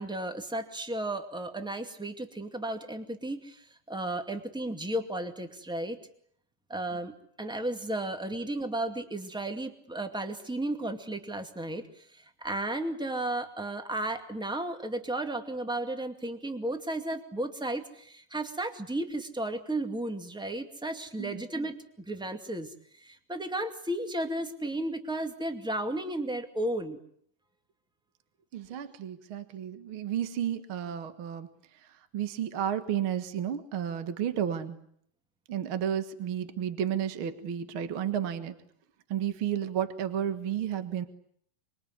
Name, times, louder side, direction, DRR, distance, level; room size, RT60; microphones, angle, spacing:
voice 1, 0.0-6.0 6.7-21.7 22.0-27.0, right 1 dB, ahead, 6 dB, 1.3 m, -34 dB
voice 2, 28.5-31.5 32.1-34.8 35.5-38.6 39.1-41.1, right 9 dB, 50° right, 9 dB, 1.8 m, -32 dB
26.5 x 22.5 x 9.6 m, 0.66 s
omnidirectional pair, 4.1 m